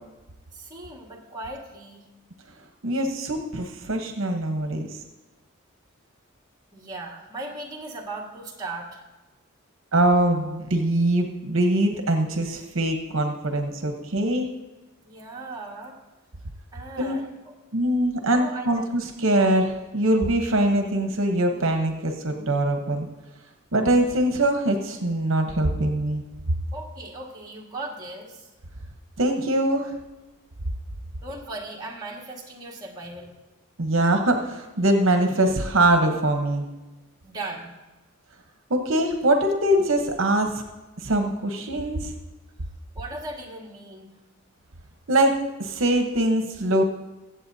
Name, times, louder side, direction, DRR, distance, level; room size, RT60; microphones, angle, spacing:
voice 1, 0.5-2.0 6.7-9.0 15.0-16.0 16.7-17.5 18.3-18.9 26.7-28.5 31.2-33.3 37.2-37.7 42.9-44.1, right 2 dB, 20° right, -3 dB, 1.7 m, -37 dB
voice 2, 2.8-5.0 9.9-14.5 17.0-17.2 17.7-23.1 23.7-26.2 29.2-29.9 33.8-36.6 38.7-40.5 41.0-42.1 45.1-46.8, right 1 dB, 65° right, 4 dB, 0.9 m, -23 dB
22.5 x 7.8 x 2.7 m, 1.1 s
head